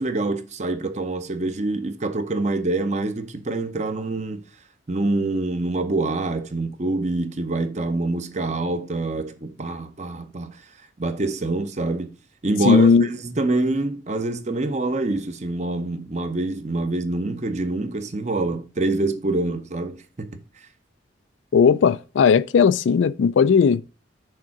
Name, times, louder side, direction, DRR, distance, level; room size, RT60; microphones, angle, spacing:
voice 1, 0.0-4.4 4.9-10.6 11.0-12.1 12.4-20.4, right 2 dB, 35° right, 0.7 m, -26 dB
voice 2, 12.6-13.0 21.5-23.9, left 6 dB, 80° left, 0.3 m, -16 dB
6.5 x 3.7 x 5.9 m
head